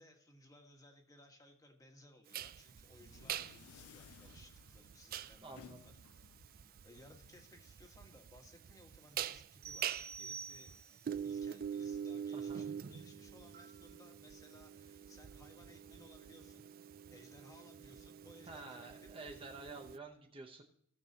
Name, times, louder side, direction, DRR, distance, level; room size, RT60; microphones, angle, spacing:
voice 1, 0.0-16.7 17.1-19.1, left 1 dB, 15° left, 3 dB, 1.4 m, -62 dB
sound 1, 2.3-20.0, right 9 dB, 40° right, 0.3 m, -45 dB
sound 2, 2.6-8.4, left 7 dB, 75° left, 0.4 m, -61 dB
voice 2, 5.4-5.8 12.3-12.7 18.5-20.6, right 3 dB, 25° right, 3 dB, 0.8 m, -50 dB
sound 3, 9.6-11.1, right 6 dB, 80° right, 2.9 m, -48 dB
17.0 x 6.7 x 2.8 m, 0.70 s
head